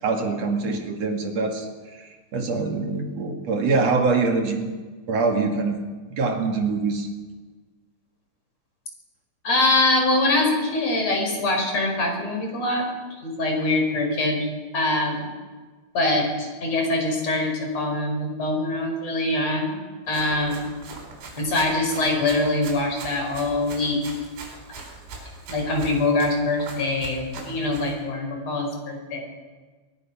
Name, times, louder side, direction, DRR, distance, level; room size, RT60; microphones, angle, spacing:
voice 1, 0.0-4.7 5.1-5.8 6.1-7.1, right 4 dB, 45° right, 3 dB, 2.3 m, -24 dB
voice 2, 9.4-12.9 13.2-14.4 14.7-15.3 15.9-19.8 20.1-20.7 21.4-24.1 24.7-24.8 25.5-29.2, left 2 dB, 35° left, 2 dB, 5.8 m, -23 dB
Run, 20.1-28.0, right 3 dB, 90° right, 7.0 m, -41 dB
22.5 x 22.0 x 6.0 m, 1.4 s
omnidirectional pair, 5.6 m